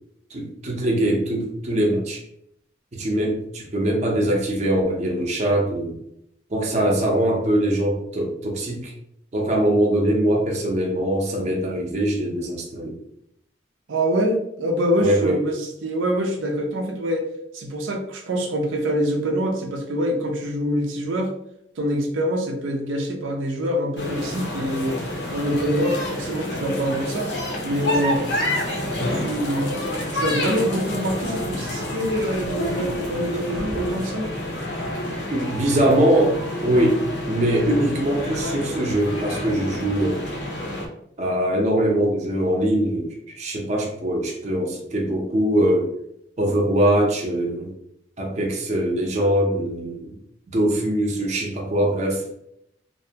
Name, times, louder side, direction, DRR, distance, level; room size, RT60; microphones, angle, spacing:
voice 1, 0.3-2.2 2.9-6.0 6.5-8.9 9.3-13.0 15.0-15.4 35.3-37.0 37.3-40.2 41.2-45.9 46.4-47.7 48.2-50.2 50.5-52.2, right 1 dB, 35° right, -1 dB, 0.5 m, -22 dB
voice 2, 13.9-17.3 17.5-21.3 21.8-25.0 25.3-27.3 27.6-29.7 30.1-34.3, equal, 85° right, 2 dB, 0.5 m, -25 dB
sound 1, 24.0-40.9, left 1 dB, 60° left, 0.5 m, -28 dB
2.6 x 2.1 x 2.7 m, 0.75 s
head